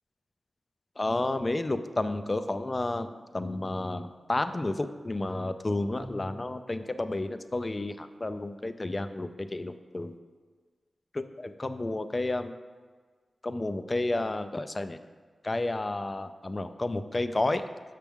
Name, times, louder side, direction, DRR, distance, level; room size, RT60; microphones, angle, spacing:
voice 1, 1.0-10.2 11.1-12.5 13.4-15.0 15.4-17.6, left 2 dB, 35° left, 10 dB, 0.4 m, -31 dB
Bowed string instrument, 6.0-6.9, equal, 35° right, 0.9 m, -45 dB
6.0 x 5.8 x 3.5 m, 1.5 s
cardioid pair, 55°, 0 cm